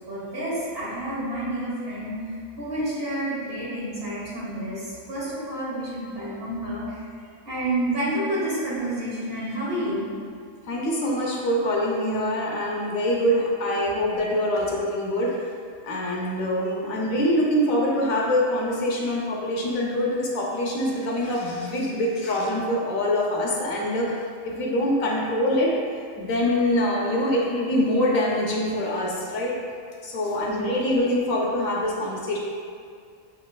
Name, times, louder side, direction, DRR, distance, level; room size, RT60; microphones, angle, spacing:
voice 1, 0.1-2.2 2.6-7.0 7.4-10.1 30.3-30.7, right 1 dB, 50° right, -8 dB, 1.6 m, -29 dB
voice 2, 10.7-15.4 15.8-24.1 24.4-25.7 26.2-29.5 30.0-32.4, left 1 dB, 90° left, -3 dB, 1.3 m, -24 dB
7.1 x 3.1 x 2.3 m, 2.2 s
omnidirectional pair, 1.4 m